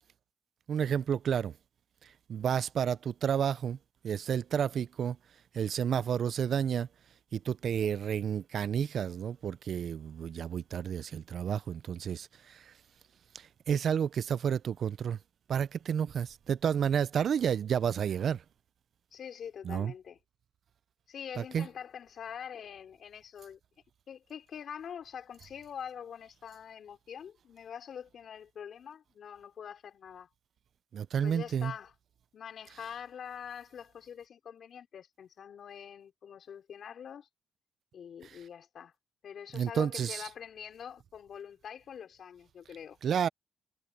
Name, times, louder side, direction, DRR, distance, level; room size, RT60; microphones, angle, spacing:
voice 1, 0.7-1.5 2.3-3.8 4.0-5.2 5.5-6.9 7.3-12.7 13.3-15.2 15.5-18.4 19.6-19.9 21.3-21.7 30.9-31.7 32.7-32.9 38.2-38.4 39.5-40.3 43.0-43.3, right 8 dB, 60° right, 0.5 m, -31 dB
voice 2, 19.1-20.2 21.1-23.6 24.1-30.3 31.2-31.9 32.3-37.3 37.9-38.9 39.2-43.0, left 8 dB, 60° left, 4.2 m, -45 dB
cardioid pair, 90°, 0 cm